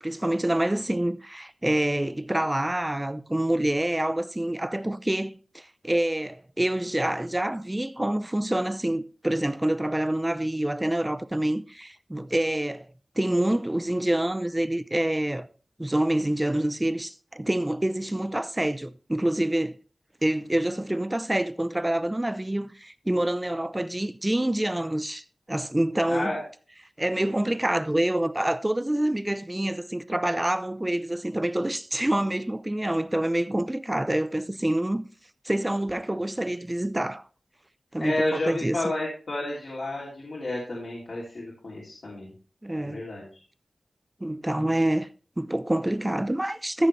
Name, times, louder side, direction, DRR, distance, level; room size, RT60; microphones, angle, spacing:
voice 1, 0.0-12.9 13.2-15.5 15.8-19.8 20.2-25.2 25.5-26.4 27.0-35.0 35.4-37.2 37.9-38.9 42.6-43.0 44.2-45.1 45.4-46.9, right 1 dB, 20° right, 0.6 m, -27 dB
voice 2, 26.1-26.4 38.0-42.3 42.8-43.3, left 1 dB, 75° left, 2.9 m, -31 dB
14.0 x 6.5 x 3.3 m
wide cardioid pair, 60°, 0 cm